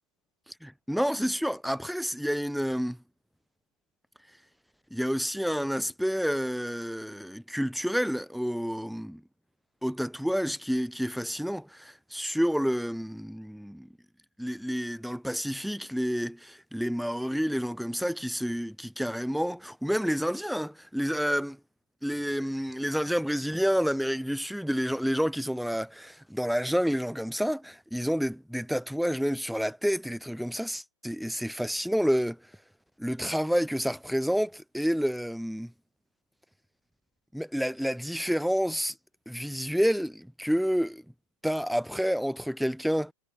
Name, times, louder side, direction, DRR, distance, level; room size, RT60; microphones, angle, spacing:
voice 1, 0.6-3.0 4.9-9.2 9.8-13.9 14.4-21.6 22.0-32.4 33.0-35.7 37.3-38.9 39.3-41.0 41.4-43.1, equal, ahead, 1.9 m, -29 dB
hypercardioid pair, 145°, 16 cm